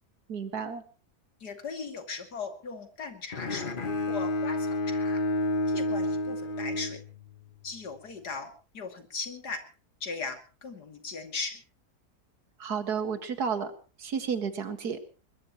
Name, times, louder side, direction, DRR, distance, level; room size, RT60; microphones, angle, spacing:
voice 1, 0.3-0.8 12.6-13.7 14.0-15.0, right 6 dB, 80° right, 9 dB, 2.3 m, -31 dB
voice 2, 1.4-3.7 4.1-5.2 5.7-7.0 7.6-9.6 10.0-11.6, left 4 dB, 90° left, 7 dB, 3.1 m, -38 dB
Bowed string instrument, 3.3-7.5, left 1 dB, 35° left, 1.3 m, -30 dB
21.5 x 21.5 x 3.0 m, 0.36 s
omnidirectional pair, 1.7 m